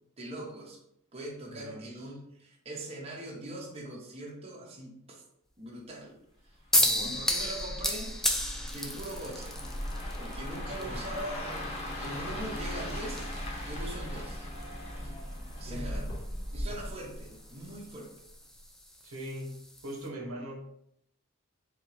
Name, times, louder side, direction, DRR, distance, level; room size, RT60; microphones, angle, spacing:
voice 1, 0.2-0.8 1.1-5.2 5.6-6.2 7.0-8.2 8.7-9.8 10.2-13.3 13.6-14.5 15.0-15.2 15.6-16.0 16.5-18.1, right 1 dB, 30° right, -2 dB, 0.8 m, -42 dB
voice 2, 1.5-2.0 6.7-7.2 10.7-11.1 15.6-16.0 19.0-19.5 19.8-20.6, right 1 dB, 85° right, 1 dB, 1.0 m, -41 dB
sound 1, 6.7-20.1, left 1 dB, ahead, 0.4 m, -35 dB
sound 2, 6.8-17.9 18.3-18.6, left 1 dB, 30° left, 0.8 m, -38 dB
3.6 x 3.4 x 3.2 m, 0.76 s
head